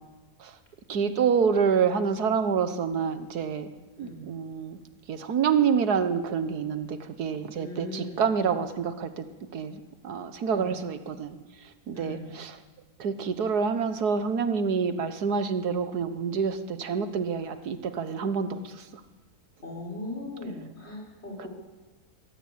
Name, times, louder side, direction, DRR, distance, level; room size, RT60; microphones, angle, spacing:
voice 1, 0.9-3.7 4.0-4.8 5.1-9.3 9.5-11.4 11.9-12.6 13.0-18.8 21.4-21.5, right 6 dB, 85° right, 11 dB, 1.7 m, -27 dB
voice 2, 7.6-8.2 10.5-10.7 11.9-12.3 19.6-21.5, left 1 dB, 40° left, -1 dB, 6.3 m, -39 dB
22.0 x 17.0 x 8.6 m, 1.3 s
omnidirectional pair, 1.6 m